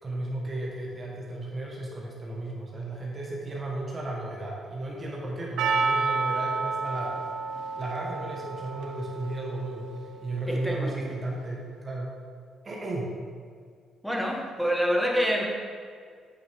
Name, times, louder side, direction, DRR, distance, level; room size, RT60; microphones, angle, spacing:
voice 1, 0.0-7.2 7.8-12.2 12.6-13.1, right 2 dB, 35° right, -3 dB, 1.5 m, -34 dB
Percussion, 5.6-10.5, right 4 dB, 85° right, 0.5 m, -30 dB
voice 2, 10.5-11.1 14.0-15.4, equal, ahead, -1 dB, 1.4 m, -27 dB
8.8 x 6.2 x 3.6 m, 2.1 s
cardioid pair, 90°, 0 cm